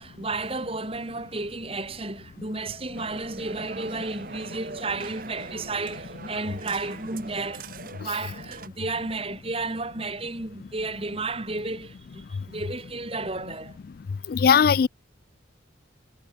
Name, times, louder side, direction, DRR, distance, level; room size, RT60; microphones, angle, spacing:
voice 1, 0.0-7.7 8.0-13.8, right 3 dB, 30° right, 2.2 m, -32 dB
sound 1, 2.9-8.7, right 4 dB, 45° right, 1.0 m, -42 dB
voice 2, 14.3-14.9, left 7 dB, 50° left, 0.3 m, -18 dB
head